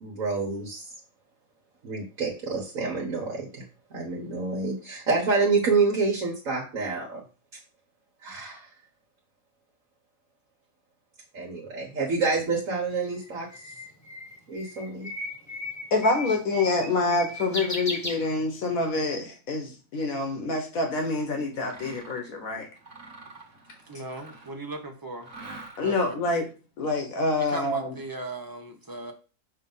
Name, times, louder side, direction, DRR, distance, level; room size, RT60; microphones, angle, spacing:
voice 1, 0.0-0.9 1.8-3.6 3.9-7.2 8.2-8.7 11.3-13.5 14.5-15.1, right 4 dB, 75° right, -3 dB, 1.7 m, -27 dB
Bird, 12.6-18.8, left 1 dB, 15° left, 0.9 m, -36 dB
voice 2, 15.9-22.7 25.8-26.5 26.8-27.9, left 3 dB, 85° left, 3 dB, 1.6 m, -26 dB
Mechanisms, 21.5-22.3 22.8-24.7 25.2-26.1, right 3 dB, 55° right, 1.6 m, -46 dB
voice 3, 23.9-25.3 25.8-26.2 27.4-29.1, right 2 dB, 20° right, 3 dB, 0.9 m, -37 dB
6.5 x 2.9 x 5.4 m, 0.35 s
omnidirectional pair, 1.4 m